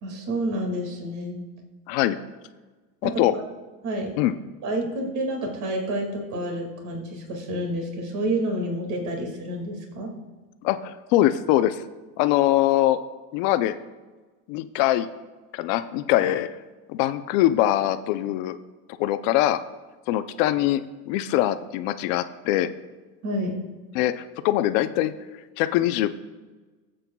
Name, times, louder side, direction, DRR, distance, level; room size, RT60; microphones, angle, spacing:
voice 1, 0.0-1.4 3.0-3.4 3.8-4.2 4.6-10.1 23.2-23.6, right 1 dB, 40° right, 2 dB, 2.1 m, -29 dB
voice 2, 3.0-3.3 4.2-4.3 10.6-11.8 12.2-13.0 13.3-13.8 14.5-15.1 15.5-16.5 16.9-18.6 19.0-19.6 20.1-20.8 21.1-22.7 23.9-25.1 25.6-26.1, left 14 dB, 55° left, 10 dB, 0.6 m, -22 dB
22.0 x 7.7 x 2.3 m, 1.3 s
supercardioid pair, 155°, 46 cm